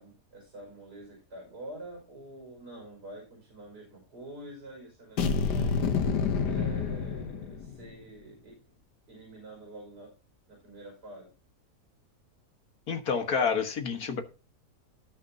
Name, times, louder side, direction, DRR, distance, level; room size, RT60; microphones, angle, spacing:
voice 1, 0.0-5.8 6.4-8.6 9.1-10.1 10.5-11.3, right 1 dB, 85° right, -1 dB, 5.9 m, -47 dB
sound 1, 5.2-7.9, left 5 dB, 85° left, 1.6 m, -28 dB
voice 2, 12.9-14.2, left 6 dB, 65° left, 6 dB, 2.0 m, -28 dB
18.0 x 6.6 x 2.8 m, 0.33 s
omnidirectional pair, 1.7 m